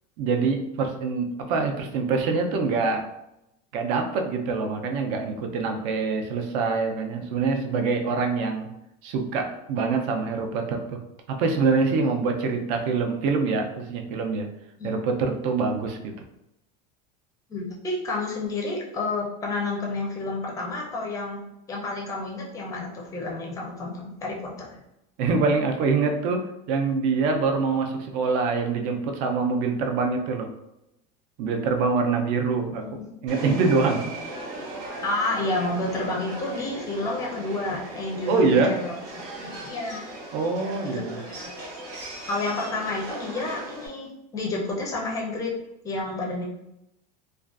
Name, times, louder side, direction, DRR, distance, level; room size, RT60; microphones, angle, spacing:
voice 1, 0.2-3.1 3.7-8.7 9.0-11.0 11.3-14.5 14.8-16.1 25.2-30.5 31.4-34.1 38.3-38.8 40.3-41.2, right 4 dB, 60° right, 4 dB, 0.5 m, -25 dB
voice 2, 17.5-21.4 21.7-24.8 32.6-33.2 35.0-40.1 40.8-41.5 42.2-45.5 45.8-46.4, left 2 dB, 15° left, -2 dB, 0.4 m, -30 dB
Subway metro underground, 33.3-43.9, right 1 dB, 90° right, 0.8 m, -38 dB
2.4 x 2.2 x 2.4 m, 0.86 s
cardioid pair, 155°, 21 cm